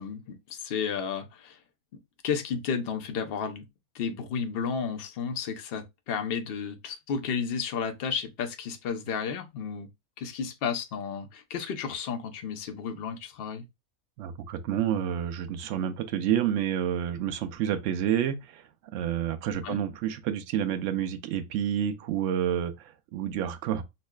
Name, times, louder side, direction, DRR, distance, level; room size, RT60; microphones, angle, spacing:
voice 1, 0.0-1.6 2.2-3.6 3.9-9.9 10.2-13.6 19.6-19.8, left 6 dB, 60° left, 0.6 m, -32 dB
voice 2, 14.2-18.6 18.9-23.8, right 10 dB, 65° right, 0.8 m, -29 dB
5.4 x 2.0 x 2.2 m
omnidirectional pair, 1.6 m